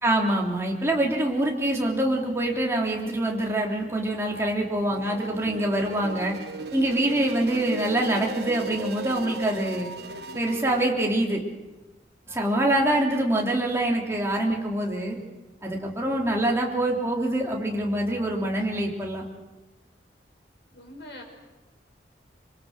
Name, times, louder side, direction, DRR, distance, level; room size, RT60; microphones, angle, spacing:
voice 1, 0.0-6.3 6.7-9.9 10.3-11.4 12.3-15.2 15.6-19.2, right 1 dB, 15° right, -1 dB, 3.2 m, -25 dB
sound 1, 4.9-10.9, right 2 dB, 65° right, 1.3 m, -37 dB
voice 2, 20.7-21.2, left 1 dB, 75° left, 2 dB, 6.0 m, -43 dB
26.0 x 23.5 x 6.6 m, 1.1 s
head